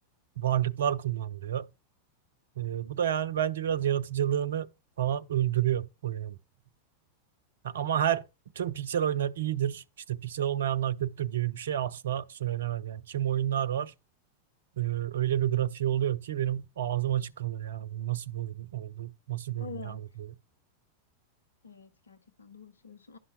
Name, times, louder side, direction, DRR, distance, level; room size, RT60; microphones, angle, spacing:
voice 1, 0.4-1.7 2.6-4.7 5.0-6.4 7.6-8.2 8.6-13.9 14.8-20.3, right 11 dB, 65° right, 0.6 m, -30 dB
voice 2, 19.6-20.0 21.6-23.2, left 5 dB, 70° left, 0.6 m, -46 dB
11.5 x 5.5 x 4.3 m
figure-of-eight pair, 90°, 0 cm